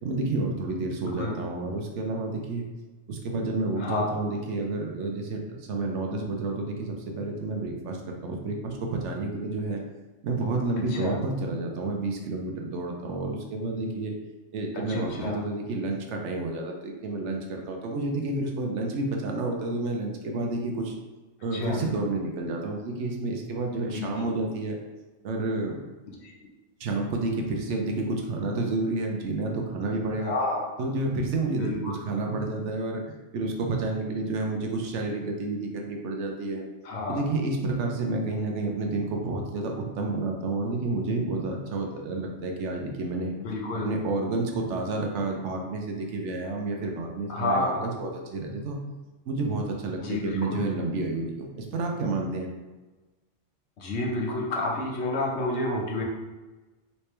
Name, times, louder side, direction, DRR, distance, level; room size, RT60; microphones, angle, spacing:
voice 1, 0.0-2.7 3.1-9.8 10.2-14.1 14.5-20.9 21.4-24.8 25.2-25.8 26.8-30.3 30.8-33.0 33.3-36.6 37.1-43.3 43.8-48.8 49.3-52.5, right 2 dB, 75° right, 1 dB, 0.9 m, -30 dB
voice 2, 1.0-1.4 3.8-4.1 10.9-11.2 14.9-15.4 21.5-21.8 23.9-24.1 26.2-26.3 30.2-30.6 31.6-31.9 36.8-37.2 43.4-43.9 47.3-47.8 50.0-50.6 53.8-56.0, left 2 dB, 65° left, -2 dB, 1.0 m, -29 dB
3.3 x 3.0 x 3.2 m, 1.2 s
omnidirectional pair, 1.3 m